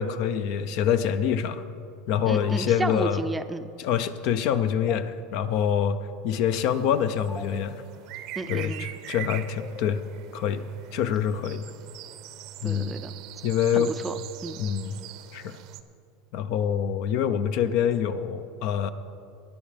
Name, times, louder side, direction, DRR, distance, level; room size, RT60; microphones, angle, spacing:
voice 1, 0.0-1.6 2.1-3.2 3.8-6.0 6.2-7.8 8.5-10.0 10.3-10.6 10.9-11.7 12.6-12.9 13.4-13.9 14.6-15.0 15.3-15.6 16.3-18.9, left 8 dB, 60° left, 12 dB, 0.6 m, -25 dB
voice 2, 2.3-3.7 8.4-8.9 12.6-13.1 13.7-14.6, right 3 dB, 10° right, 10 dB, 0.5 m, -32 dB
sound 1, 2.4-2.6 4.8-5.0 7.2-7.4 9.6-10.0, left 1 dB, 10° left, 1.0 m, -40 dB
sound 2, 6.6-15.8, right 13 dB, 55° right, 0.6 m, -42 dB
19.0 x 10.0 x 3.4 m, 2.5 s
supercardioid pair, 125°, 0 cm